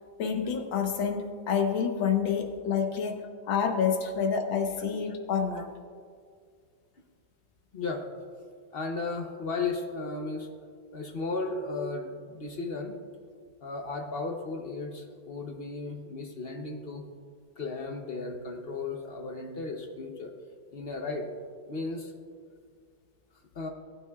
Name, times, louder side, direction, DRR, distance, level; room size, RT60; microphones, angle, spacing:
voice 1, 0.2-5.7, left 6 dB, 90° left, 4 dB, 1.8 m, -28 dB
voice 2, 7.7-8.0 8.7-10.5 10.9-13.0 13.6-17.1 17.6-20.3 20.7-21.3 21.7-22.1 23.5-23.7, left 3 dB, 55° left, 3 dB, 0.6 m, -35 dB
19.5 x 8.9 x 2.3 m, 2.1 s
omnidirectional pair, 2.1 m